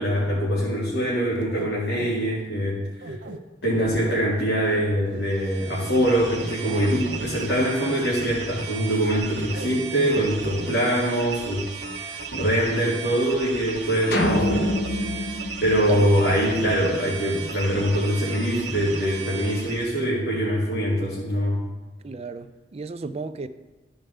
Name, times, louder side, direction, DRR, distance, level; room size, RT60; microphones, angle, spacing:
voice 1, 0.0-3.1 3.6-11.7 12.0-14.7 15.0-15.3 15.6-21.7, equal, 75° left, -7 dB, 2.1 m, -23 dB
sound 1, 1.4-2.2 3.0-3.4 3.8-4.2 4.6-4.8 5.1-5.2 5.8-7.3 9.5-9.8 10.1-10.9, right 2 dB, 65° right, 0.7 m, -37 dB
sound 2, 5.2-20.0, right 5 dB, 85° right, 1.3 m, -36 dB
sound 3, 14.1-16.6, left 1 dB, 60° left, 1.0 m, -26 dB
voice 2, 22.0-23.5, right 4 dB, 35° right, 11 dB, 0.4 m, -33 dB
14.5 x 5.1 x 3.3 m, 1.2 s
head